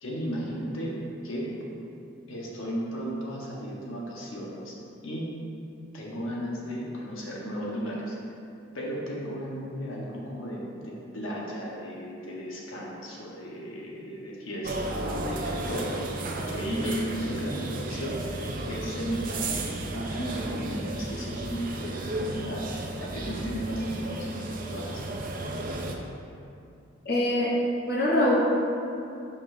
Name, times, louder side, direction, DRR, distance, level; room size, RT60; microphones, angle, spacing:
voice 1, 0.0-1.0 1.2-1.5 2.3-4.7 5.0-5.3 5.9-8.2 8.7-25.2, equal, 80° left, -3 dB, 1.0 m, -35 dB
sound 1, 14.6-26.0, right 2 dB, 45° right, 0.5 m, -34 dB
voice 2, 27.0-27.5 27.9-28.4, left 1 dB, 50° left, -6 dB, 0.9 m, -23 dB
6.6 x 5.6 x 2.5 m, 2.6 s
head